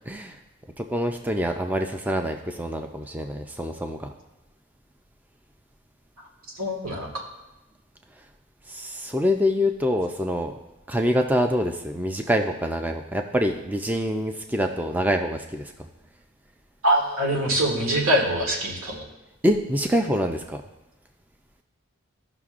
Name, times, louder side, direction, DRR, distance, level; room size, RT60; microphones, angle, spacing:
voice 1, 0.1-0.4 0.8-4.1 8.7-10.6 10.9-15.7 19.4-20.6, equal, 10° right, 4 dB, 0.4 m, -25 dB
voice 2, 6.5-7.2 16.8-19.1, right 1 dB, 85° right, 0 dB, 1.7 m, -23 dB
14.5 x 5.9 x 2.4 m, 1.0 s
head